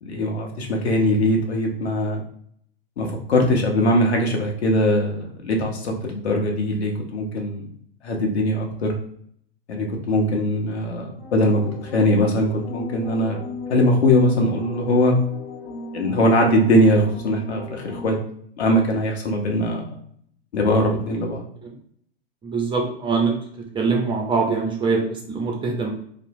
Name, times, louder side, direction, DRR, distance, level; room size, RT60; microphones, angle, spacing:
voice 1, 0.0-2.2 3.0-7.6 8.0-8.9 9.7-11.6 11.9-13.4 13.7-15.1 15.9-18.2 18.6-19.9 20.5-21.4, left 1 dB, 80° left, 1 dB, 0.8 m, -21 dB
sound 1, 11.2-18.1, left 3 dB, 60° left, 1.1 m, -36 dB
voice 2, 22.4-23.4 23.7-25.9, right 4 dB, 15° right, 0 dB, 0.5 m, -23 dB
2.8 x 2.1 x 2.6 m, 0.65 s
hypercardioid pair, 100°, 32 cm